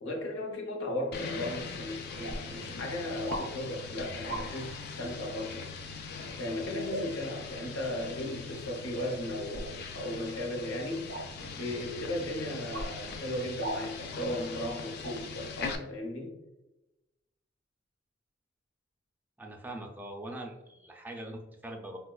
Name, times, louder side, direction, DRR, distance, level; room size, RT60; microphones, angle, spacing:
voice 1, 0.0-5.7 6.4-11.1 11.6-16.4, left 1 dB, 85° left, 1 dB, 0.7 m, -36 dB
sound 1, 1.1-15.7, left 4 dB, 55° left, 0.4 m, -41 dB
sound 2, 1.6-1.7 2.2-2.4 3.3-3.5 4.2-4.5 6.9-7.1 9.5-9.7 11.1-11.3 12.7-12.9 13.6-13.8 15.0-15.2, right 1 dB, 70° right, 0.5 m, -36 dB
voice 2, 19.4-22.0, right 1 dB, 10° right, 2 dB, 0.4 m, -42 dB
4.4 x 2.1 x 2.2 m, 0.99 s
head